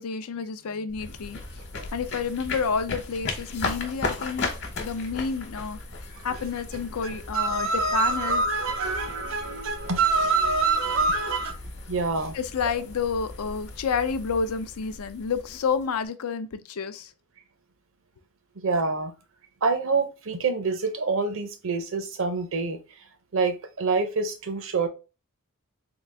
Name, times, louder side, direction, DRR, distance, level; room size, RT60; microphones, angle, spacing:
voice 1, 0.0-1.4 1.9-4.5 4.8-5.8 6.2-8.4 12.3-17.1, left 5 dB, 90° left, 0.5 m, -29 dB
sound 1, 0.9-16.1, left 3 dB, 55° left, 1.0 m, -37 dB
voice 2, 6.1-6.5 6.7-11.6 11.9-12.4 12.6-12.7 18.6-19.1 19.6-22.8 23.3-24.9, right 4 dB, 65° right, 0.7 m, -26 dB
3.8 x 2.4 x 3.3 m
head